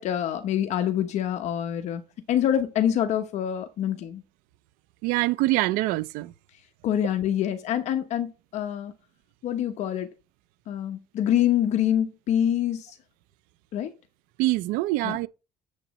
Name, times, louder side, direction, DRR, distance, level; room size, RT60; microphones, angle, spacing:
voice 1, 0.0-2.0 2.3-4.2 6.8-8.9 9.4-10.1 10.7-13.0 13.7-13.9 15.0-15.2, left 10 dB, 55° left, 0.9 m, -26 dB
voice 2, 5.0-6.3 14.4-15.3, right 19 dB, 85° right, 0.4 m, -24 dB
9.4 x 7.2 x 3.1 m
cardioid pair, 140°, 14 cm